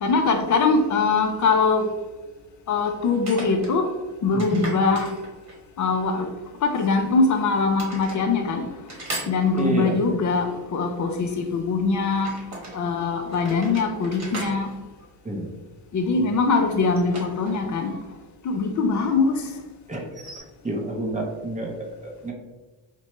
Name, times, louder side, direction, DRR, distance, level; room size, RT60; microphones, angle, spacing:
voice 1, 0.0-1.9 2.7-3.9 4.2-5.1 5.8-6.3 6.6-8.7 9.3-12.4 12.7-14.7 15.9-18.0 18.4-19.5, left 4 dB, 40° left, 0.4 m, -22 dB
sound 1, 3.1-3.8 4.4-5.7 6.7-7.4 7.7-8.2 8.9-10.0 12.1-12.8 13.3-15.7 16.7-18.0 18.2-18.3 20.0-20.4, right 2 dB, 35° right, 1.1 m, -38 dB
voice 2, 4.3-4.7 9.6-10.0 15.2-15.5 16.2-16.3 19.9-20.0 20.6-22.3, right 2 dB, 15° right, 0.5 m, -28 dB
4.4 x 2.2 x 2.9 m
cardioid pair, 145°, 47 cm